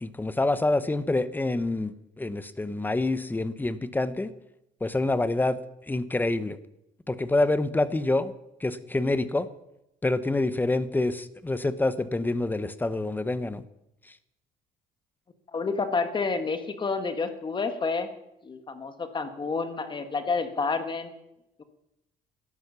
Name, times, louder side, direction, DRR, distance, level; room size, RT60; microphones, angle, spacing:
voice 1, 0.0-4.3 4.8-5.6 5.9-6.6 7.1-8.3 8.6-9.5 10.0-13.6, left 2 dB, 10° left, 14 dB, 0.8 m, -27 dB
voice 2, 15.5-18.1 18.4-21.1 21.6-21.7, left 4 dB, 30° left, 9 dB, 1.5 m, -29 dB
12.5 x 10.5 x 6.9 m, 0.85 s
cardioid pair, 110°, 17 cm